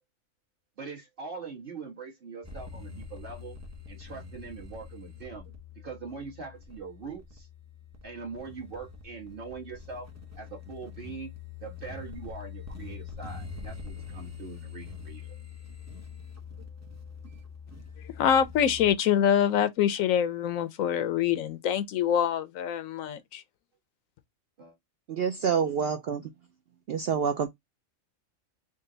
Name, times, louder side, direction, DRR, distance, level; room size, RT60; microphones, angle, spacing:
voice 1, 0.8-3.6 3.9-5.5 5.7-7.5 8.0-10.1 10.3-11.3 11.6-15.4 16.8-17.0 24.6-24.7, right 4 dB, 45° right, 1.4 m, -42 dB
sound 1, 2.4-18.9, left 6 dB, 15° right, 0.5 m, -44 dB
voice 2, 18.2-23.4, left 9 dB, 85° left, 1.0 m, -25 dB
voice 3, 25.1-26.3 26.9-27.5, right 7 dB, 65° right, 0.6 m, -27 dB
3.8 x 2.2 x 3.8 m
omnidirectional pair, 1.4 m